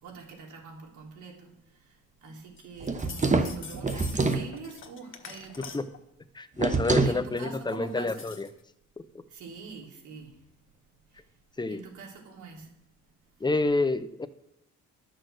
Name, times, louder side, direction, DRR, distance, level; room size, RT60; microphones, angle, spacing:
voice 1, 0.0-1.5 1.7-5.7 6.9-8.3 9.3-10.3 11.7-12.7, right 4 dB, 75° right, -1 dB, 3.3 m, -44 dB
sound 1, 2.6-6.0 7.1-8.6, left 5 dB, 40° left, 1.4 m, -46 dB
sound 2, 2.8-4.5 6.6-7.2, right 3 dB, 25° right, 1.0 m, -25 dB
voice 2, 6.3-8.5 9.0-9.2 11.6-11.8 13.4-14.3, left 3 dB, 15° left, 12 dB, 0.7 m, -29 dB
11.0 x 6.6 x 6.4 m, 0.85 s
cardioid pair, 90°, 30 cm